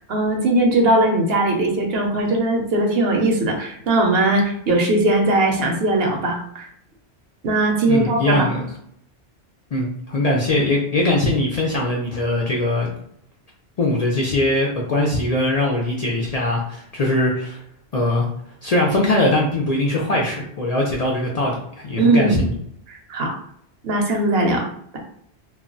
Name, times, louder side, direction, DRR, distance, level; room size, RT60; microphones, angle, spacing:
voice 1, 0.1-6.7 7.4-8.5 22.0-22.4 22.9-23.3 23.8-24.6, right 2 dB, 70° right, 1 dB, 0.9 m, -19 dB
voice 2, 7.9-8.6 9.7-12.9 13.8-17.6 17.9-18.3 18.6-22.6, left 1 dB, 55° left, -2 dB, 0.4 m, -21 dB
2.3 x 2.1 x 3.7 m, 0.69 s
omnidirectional pair, 1.1 m